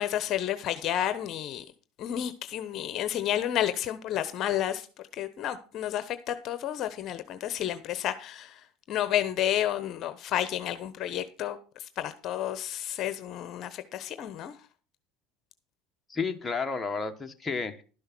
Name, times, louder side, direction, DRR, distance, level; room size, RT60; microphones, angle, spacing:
voice 1, 0.0-1.6 2.0-4.9 5.1-14.6, left 11 dB, 50° left, 1.0 m, -31 dB
voice 2, 16.1-17.8, left 4 dB, 15° left, 1.4 m, -31 dB
12.0 x 6.4 x 6.1 m
supercardioid pair, 115°, 0 cm